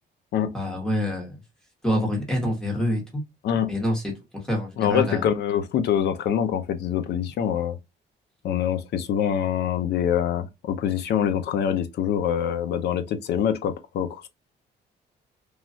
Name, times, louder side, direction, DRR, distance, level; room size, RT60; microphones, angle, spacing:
voice 1, 0.5-1.4 1.8-3.2 3.7-4.0 4.3-5.2, left 1 dB, 5° left, 0.9 m, -26 dB
voice 2, 4.8-7.8 8.4-14.3, left 9 dB, 70° left, 0.5 m, -25 dB
3.1 x 2.3 x 2.6 m
cardioid pair, 155°, 18 cm